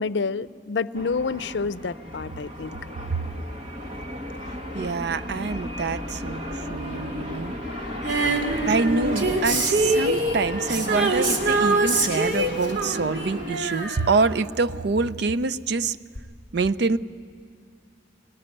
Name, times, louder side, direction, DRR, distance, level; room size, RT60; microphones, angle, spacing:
voice 1, 0.0-2.8, left 4 dB, 75° left, 16 dB, 0.5 m, -28 dB
sound 1, 0.9-13.6, left 1 dB, 45° right, 2.1 m, -34 dB
voice 2, 3.1-3.4 4.7-7.6 8.7-16.0 16.5-17.0, right 4 dB, 65° right, 15 dB, 0.5 m, -26 dB
Female singing, 8.0-15.0 16.2-16.3, right 2 dB, 90° right, 2.7 m, -25 dB
22.5 x 19.5 x 9.7 m, 2.4 s
head